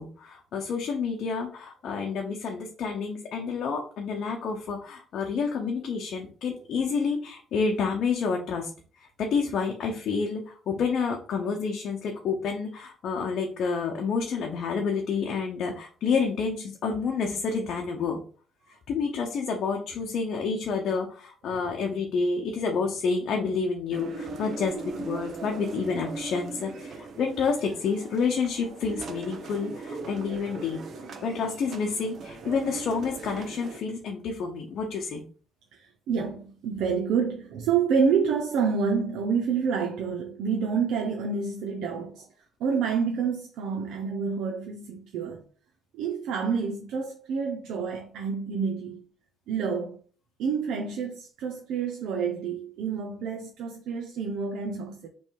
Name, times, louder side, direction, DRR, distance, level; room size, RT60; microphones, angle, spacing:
voice 1, 0.0-8.7 9.2-18.2 18.9-30.8 31.2-35.2, left 5 dB, 70° left, 0.7 m, -29 dB
sound 1, 23.9-33.8, right 4 dB, 60° right, 0.8 m, -39 dB
voice 2, 35.7-42.3 42.6-45.4 45.9-49.0 49.5-50.0 50.4-55.1, right 6 dB, 90° right, 0.6 m, -28 dB
3.3 x 3.1 x 4.6 m
cardioid pair, 90°, 0 cm